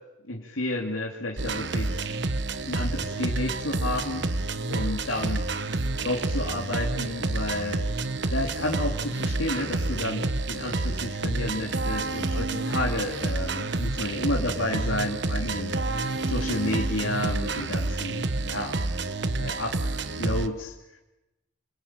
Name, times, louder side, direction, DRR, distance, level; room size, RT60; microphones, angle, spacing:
voice 1, 0.3-1.9 2.6-4.2 4.6-5.4 6.0-7.8 8.3-15.8 16.3-18.8 19.4-20.7, left 1 dB, 85° left, -1 dB, 2.9 m, -31 dB
sound 1, 1.4-20.5, right 2 dB, 60° right, 1.2 m, -29 dB
28.0 x 22.0 x 9.0 m, 0.97 s
head